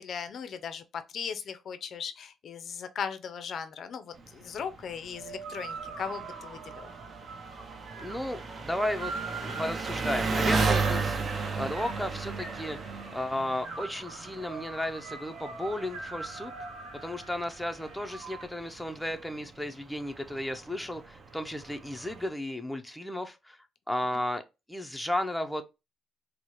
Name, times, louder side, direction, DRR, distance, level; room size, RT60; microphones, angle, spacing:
voice 1, 0.0-6.9, left 7 dB, 60° left, 0.4 m, -38 dB
Engine, 4.2-22.3, right 4 dB, 45° right, 0.5 m, -35 dB
sound 1, 5.1-18.4, right 4 dB, 85° right, 0.8 m, -43 dB
voice 2, 8.0-9.1 9.4-11.3 11.6-16.5 17.0-23.6 23.9-24.4 24.7-25.6, left 1 dB, 5° left, 0.5 m, -34 dB
4.4 x 2.1 x 2.9 m
cardioid pair, 90°, 0 cm